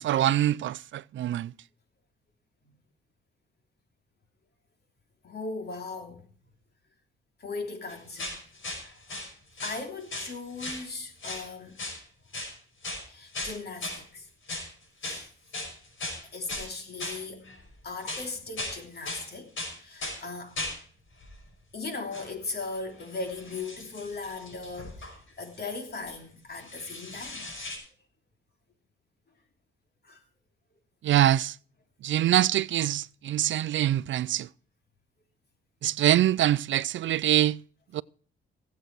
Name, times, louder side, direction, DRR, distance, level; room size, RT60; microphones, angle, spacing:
voice 1, 0.0-1.5 31.0-31.5 32.0-34.5 35.8-37.6 37.9-38.0, right 12 dB, 65° right, 0.5 m, -24 dB
voice 2, 5.2-6.3 7.4-8.4 9.6-11.8 13.1-14.3 15.0-15.3 16.3-17.5 17.8-19.5 19.8-20.6 21.7-27.5 30.0-30.2, left 3 dB, 50° left, 3.2 m, -38 dB
sound 1, 7.9-9.3 9.6-10.3 10.6-10.9 11.2-11.5 11.8-12.0 12.3-12.5 12.8-13.1 13.3-14.0 14.5-14.7 15.0-15.2 15.5-16.7 17.0-17.7 18.0-18.8 19.0-19.3 19.6-20.2 20.6-20.8 21.2-21.4 22.1-22.3 22.6-26.2 26.5-27.8, left 2 dB, 70° left, 5.7 m, -37 dB
17.0 x 8.0 x 4.6 m
cardioid pair, 80°, 21 cm